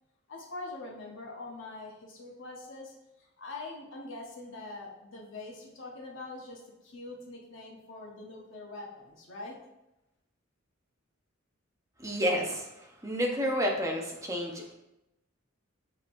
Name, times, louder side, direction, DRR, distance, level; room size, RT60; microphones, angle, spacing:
voice 1, 0.3-9.6, left 2 dB, 65° left, -2 dB, 0.9 m, -44 dB
voice 2, 12.0-12.7 13.0-14.7, equal, 15° right, 0 dB, 0.6 m, -30 dB
6.0 x 2.9 x 2.5 m, 0.91 s
head